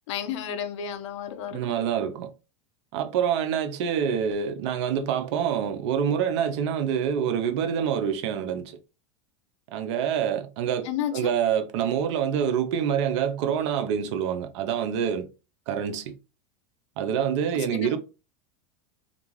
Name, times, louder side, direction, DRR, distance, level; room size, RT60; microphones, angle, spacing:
voice 1, 0.1-1.7 10.8-11.3 17.5-18.0, left 9 dB, 70° left, 0.5 m, -32 dB
voice 2, 1.5-2.3 2.9-8.8 9.7-15.3 15.7-16.1 17.0-18.0, right 8 dB, 65° right, 0.5 m, -26 dB
2.4 x 2.3 x 3.0 m
hypercardioid pair, 100°, 16 cm